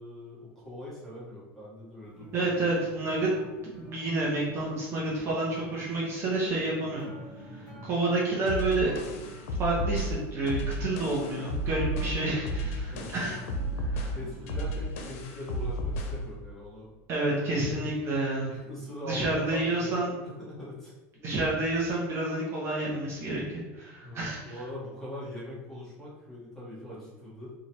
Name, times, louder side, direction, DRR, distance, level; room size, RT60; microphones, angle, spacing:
voice 1, 0.0-2.9 7.7-8.0 12.9-13.3 14.1-16.9 17.5-17.9 18.5-20.0 20.2-20.9 24.0-27.5, left 1 dB, 5° left, -8 dB, 1.3 m, -42 dB
sound 1, 2.0-14.8, right 1 dB, 15° right, 1.3 m, -48 dB
voice 2, 2.3-3.3 3.6-7.1 7.5-9.0 9.6-13.4 13.9-14.2 17.1-18.6 19.0-20.1 21.2-24.5, right 2 dB, 35° right, -5 dB, 0.8 m, -29 dB
sound 2, 8.5-16.3, right 1 dB, 85° left, 0.6 m, -32 dB
3.0 x 2.4 x 4.3 m, 1.2 s
supercardioid pair, 140°, 8 cm